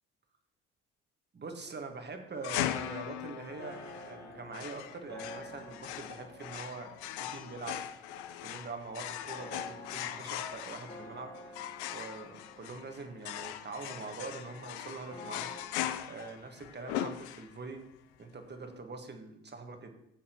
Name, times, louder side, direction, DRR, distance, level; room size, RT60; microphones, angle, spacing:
voice 1, 1.3-6.9 7.2-7.8 8.4-11.6 11.9-15.5 16.1-17.8 18.2-20.0, right 3 dB, 30° right, 5 dB, 1.6 m, -44 dB
sound 1, 2.3-15.6, left 1 dB, 25° left, 2.1 m, -51 dB
sound 2, 2.4-17.8, left 12 dB, 80° left, 0.5 m, -40 dB
15.0 x 7.2 x 3.0 m, 0.81 s
hypercardioid pair, 55°, 34 cm